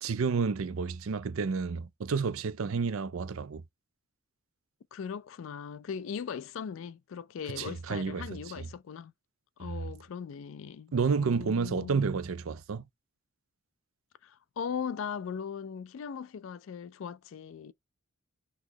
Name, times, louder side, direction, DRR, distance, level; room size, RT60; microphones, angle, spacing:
voice 1, 0.0-3.6 7.5-8.2 8.6-8.7 9.6-9.8 10.9-12.8, right 5 dB, 75° right, 0.5 m, -30 dB
voice 2, 4.9-9.1 9.6-12.1 14.2-17.7, left 7 dB, 65° left, 0.3 m, -39 dB
4.0 x 3.0 x 2.7 m
head